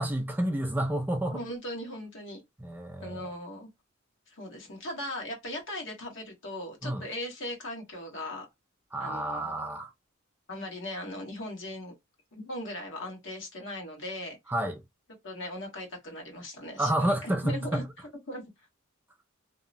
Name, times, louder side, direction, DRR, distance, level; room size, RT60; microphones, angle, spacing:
voice 1, 0.0-1.4 2.6-3.3 6.8-7.0 8.9-9.9 14.5-14.8 16.8-17.8, right 1 dB, 10° right, 0.3 m, -29 dB
voice 2, 1.3-2.4 3.0-3.7 4.3-8.5 9.0-9.7 10.5-11.9 12.3-14.4 15.2-17.8 18.3-18.4, left 1 dB, 65° left, 1.2 m, -38 dB
2.8 x 2.1 x 2.4 m
head